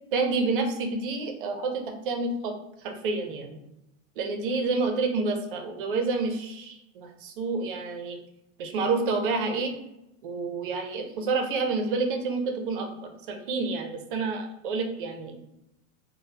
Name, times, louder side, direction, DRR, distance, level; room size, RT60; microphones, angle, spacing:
voice 1, 0.1-3.6 4.2-8.2 8.6-9.8 10.2-15.4, right 3 dB, 40° right, 4 dB, 0.4 m, -29 dB
3.3 x 2.0 x 2.7 m, 0.88 s
supercardioid pair, 155°, 41 cm